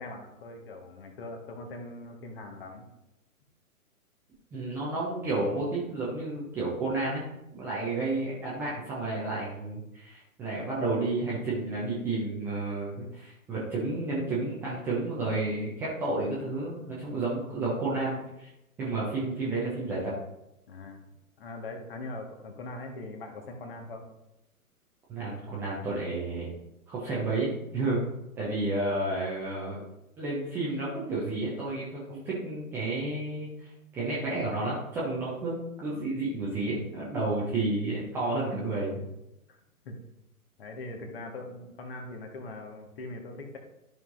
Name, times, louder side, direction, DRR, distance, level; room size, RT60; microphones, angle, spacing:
voice 1, 0.0-2.9 20.7-21.0 21.4-24.1 39.5-39.6 39.8-40.0 40.6-43.6, left 2 dB, 40° left, 3 dB, 1.6 m, -41 dB
voice 2, 4.5-7.2 7.5-18.5 18.8-20.1 25.1-26.5 26.9-28.0 28.4-29.8 30.2-39.0, right 2 dB, 5° right, -7 dB, 0.6 m, -31 dB
13.0 x 5.9 x 2.6 m, 0.90 s
figure-of-eight pair, 125°, 44 cm